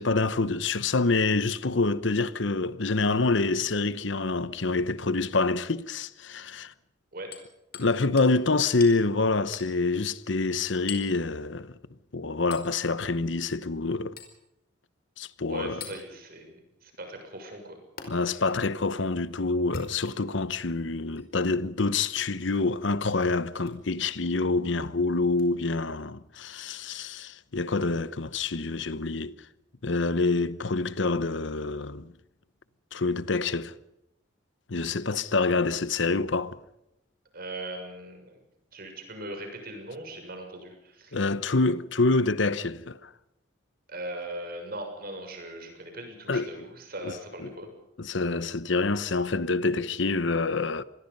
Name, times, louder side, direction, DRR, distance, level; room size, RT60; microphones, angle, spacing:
voice 1, 0.0-6.7 7.7-11.7 12.1-14.2 15.2-15.8 18.1-29.4 29.8-32.1 32.9-33.7 34.7-36.6 41.1-43.1 46.3-46.5 47.0-47.1 47.4-47.5 48.0-50.8, left 3 dB, 70° left, 1.0 m, -27 dB
Hammer, 7.3-7.9 8.2-8.3 8.8-9.0 9.5-9.7 10.9-11.2 12.5-12.7 14.2-14.4 15.8-16.0 18.0-18.1 19.6-20.4 21.1-21.3 22.5-22.7 23.6-23.8 25.4-25.5, left 5 dB, 50° left, 4.9 m, -41 dB
voice 2, 15.5-17.8 18.1-18.4 37.3-38.4 38.7-41.2 43.9-47.7, right 1 dB, 50° right, 6.8 m, -40 dB
26.5 x 21.5 x 5.5 m
head